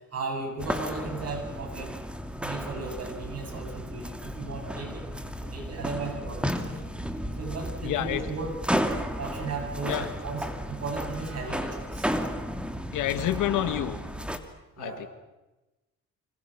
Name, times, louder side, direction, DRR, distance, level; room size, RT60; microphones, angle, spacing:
voice 1, 0.1-1.9 2.4-5.1 5.4-6.8 7.4-8.6 9.1-12.1 14.8-15.1, right 3 dB, 55° right, 3 dB, 7.9 m, -36 dB
sound 1, 0.6-14.4, equal, 5° right, 2.6 m, -33 dB
voice 2, 7.8-8.3 9.9-10.1 12.9-14.0 14.8-15.1, left 12 dB, 90° left, 10 dB, 2.0 m, -28 dB
28.0 x 26.0 x 6.2 m, 1.0 s
cardioid pair, 90°, 30 cm